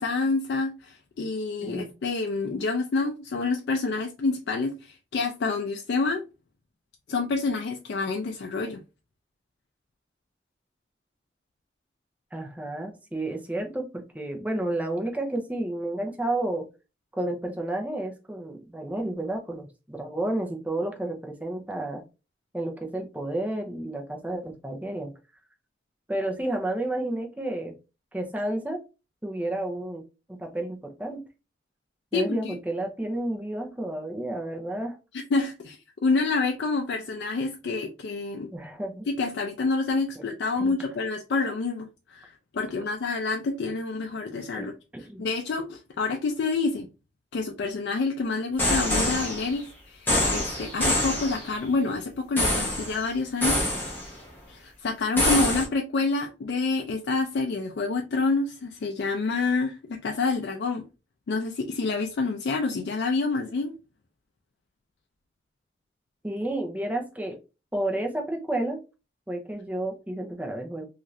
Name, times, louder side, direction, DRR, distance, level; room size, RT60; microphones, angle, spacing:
voice 1, 0.0-6.2 7.1-8.8 32.1-32.6 35.1-35.8 36.0-38.5 39.1-44.7 45.2-46.9 47.3-53.6 54.5-60.9 61.3-63.7, left 3 dB, 70° left, 0.4 m, -28 dB
voice 2, 12.3-16.7 17.2-22.0 22.5-25.1 26.1-27.7 28.1-28.8 29.2-30.0 30.3-31.2 32.1-35.0 38.5-39.1 40.2-40.3 40.6-40.7 44.6-45.2 66.2-67.4 67.7-68.8 69.3-70.9, right 1 dB, 10° right, 0.5 m, -31 dB
sound 1, 48.6-49.6 50.1-51.5 52.4-53.0 53.4-54.2 55.2-55.7, left 1 dB, 10° left, 0.9 m, -25 dB
2.6 x 2.4 x 3.1 m
head